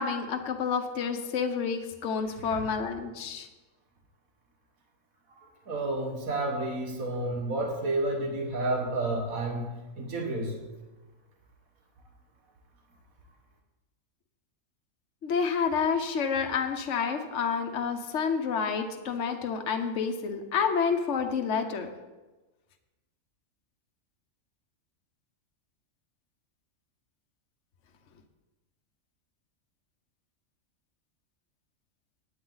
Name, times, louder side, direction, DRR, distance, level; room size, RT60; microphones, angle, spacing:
voice 1, 0.0-3.5 15.2-21.9, left 6 dB, 60° left, 5 dB, 1.3 m, -29 dB
voice 2, 5.7-9.7 10.0-10.6, right 2 dB, 80° right, 1 dB, 2.1 m, -30 dB
18.0 x 9.5 x 4.0 m, 1.2 s
omnidirectional pair, 1.4 m